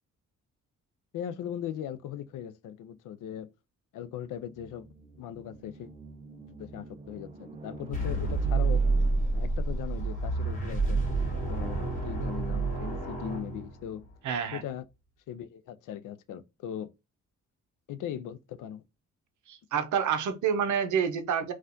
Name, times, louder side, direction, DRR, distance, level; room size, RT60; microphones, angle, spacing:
voice 1, 1.1-3.5 3.9-4.9 5.2-5.9 6.6-8.8 9.3-11.0 11.5-14.0 14.5-14.9 15.3-16.9 17.9-18.8, left 10 dB, 90° left, 0.5 m, -39 dB
sound 1, 4.2-9.7, right 4 dB, 20° right, 0.4 m, -47 dB
sound 2, 7.9-14.1, right 3 dB, 25° left, 1.2 m, -29 dB
voice 2, 14.2-14.6 19.5-21.5, right 7 dB, 70° right, 0.7 m, -28 dB
4.2 x 2.4 x 2.6 m
wide cardioid pair, 160°, 31 cm